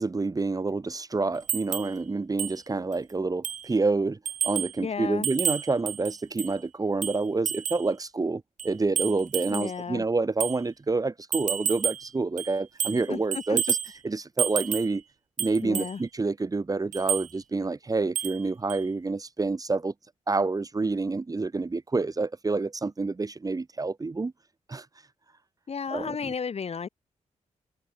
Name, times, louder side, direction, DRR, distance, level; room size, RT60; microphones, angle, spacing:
voice 1, 0.0-13.8 14.0-15.0 15.4-19.9 20.3-24.3 24.7-24.9 25.9-26.3, right 3 dB, 30° right, 1.7 m, -28 dB
sound 1, 1.5-2.0 2.4-2.6 2.9-3.0 3.4-3.7 4.3-4.8 5.2-6.6 7.0-7.9 8.6-9.7 10.4-10.6 11.3-12.1 12.4-13.1 13.3-13.9 14.4-15.0 15.4-15.9 16.9-17.3 18.2-18.4 18.7-18.8, right 9 dB, 80° right, 2.1 m, -30 dB
voice 2, 4.8-5.3 9.5-10.1 13.1-13.6 15.6-16.0 25.7-26.9, left 6 dB, 55° left, 3.6 m, -33 dB
cardioid pair, 85°, 13 cm